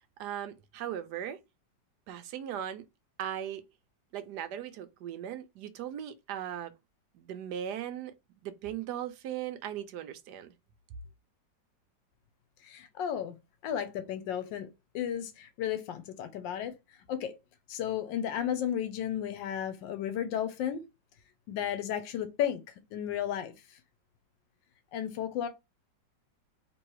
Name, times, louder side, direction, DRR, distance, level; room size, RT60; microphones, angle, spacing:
voice 1, 0.0-1.4 2.1-2.8 3.2-3.6 4.1-6.7 7.1-8.1 8.4-10.5, right 10 dB, 70° right, 1.1 m, -38 dB
voice 2, 12.6-13.4 13.6-14.7 14.9-16.7 17.1-17.4 17.7-20.8 21.5-23.8 24.9-25.5, left 10 dB, 90° left, 1.3 m, -33 dB
3.1 x 3.0 x 4.6 m
omnidirectional pair, 2.0 m